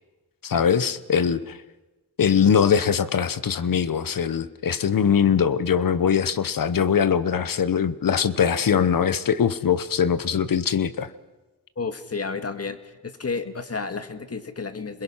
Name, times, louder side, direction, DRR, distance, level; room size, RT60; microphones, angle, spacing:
voice 1, 0.4-1.6 2.2-11.1, left 7 dB, 65° left, 15 dB, 1.1 m, -22 dB
voice 2, 11.8-15.0, left 4 dB, 40° left, 8 dB, 2.0 m, -31 dB
28.0 x 21.5 x 5.8 m, 1.2 s
cardioid pair, 75°, 36 cm